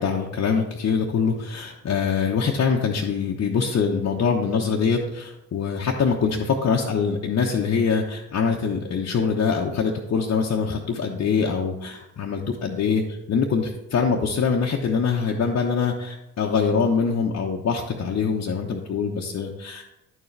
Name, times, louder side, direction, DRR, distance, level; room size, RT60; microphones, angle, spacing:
voice 1, 0.0-19.8, left 5 dB, 40° left, -1 dB, 0.9 m, -24 dB
10.5 x 4.6 x 3.3 m, 0.92 s
hypercardioid pair, 45°, 37 cm